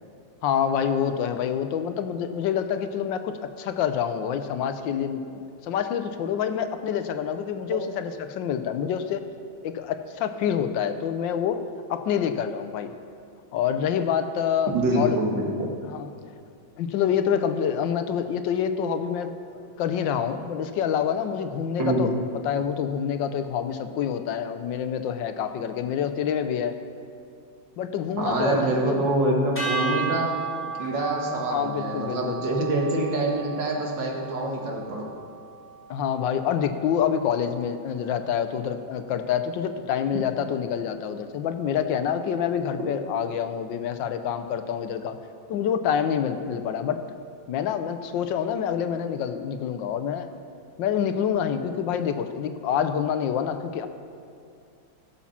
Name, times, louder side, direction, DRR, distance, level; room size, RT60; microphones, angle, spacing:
voice 1, 0.4-9.3 9.6-11.6 11.9-12.9 13.5-15.2 15.8-16.1 16.8-22.1 22.4-26.8 27.8-29.1 31.3-32.4 35.9-45.2 45.5-47.0 47.5-50.3 50.8-53.9, left 8 dB, 80° left, 9 dB, 1.4 m, -27 dB
voice 2, 14.7-15.7 21.8-22.0 28.2-30.3 30.8-35.1, right 1 dB, 75° right, -1 dB, 2.5 m, -25 dB
sound 1, 29.6-35.9, right 5 dB, 5° left, 3.0 m, -34 dB
16.5 x 7.3 x 5.8 m, 2.4 s
omnidirectional pair, 2.0 m